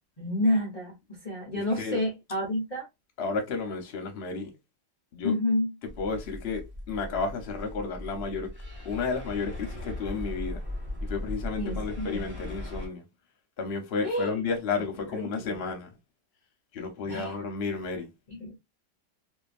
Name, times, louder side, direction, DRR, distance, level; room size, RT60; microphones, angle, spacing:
voice 1, 0.2-2.9 5.2-5.7 11.6-12.3 14.0-14.4 15.1-15.5 17.0-17.4 18.3-18.6, left 1 dB, 70° left, 0.3 m, -29 dB
voice 2, 1.6-2.0 3.2-4.5 5.1-5.3 6.0-8.5 8.8-10.6 11.0-13.0 13.6-15.9 16.7-18.1, left 4 dB, 55° left, 0.7 m, -32 dB
sound 1, 5.9-12.9, left 1 dB, 10° right, 0.7 m, -38 dB
2.8 x 2.3 x 2.4 m
omnidirectional pair, 1.9 m